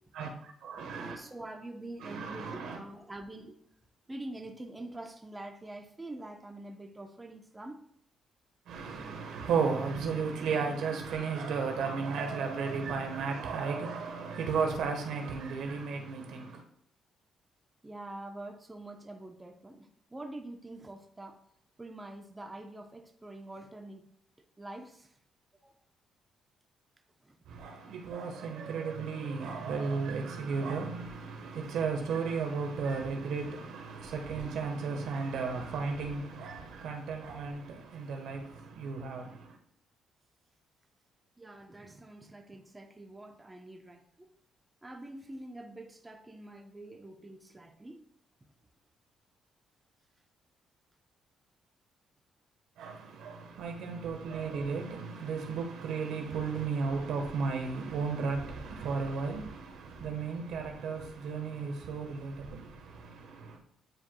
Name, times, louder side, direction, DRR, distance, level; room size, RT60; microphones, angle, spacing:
voice 1, 0.1-1.2 2.0-2.8 8.7-16.6 27.5-39.6 52.8-63.6, right 5 dB, 80° right, 1.2 m, -34 dB
voice 2, 0.9-3.5 4.1-7.8 17.8-21.4 21.8-24.1 24.6-25.1 25.6-25.7 27.2-27.3 41.4-44.3 44.8-48.0, right 1 dB, 15° right, 0.8 m, -45 dB
9.7 x 4.6 x 2.3 m
cardioid pair, 90°, 0 cm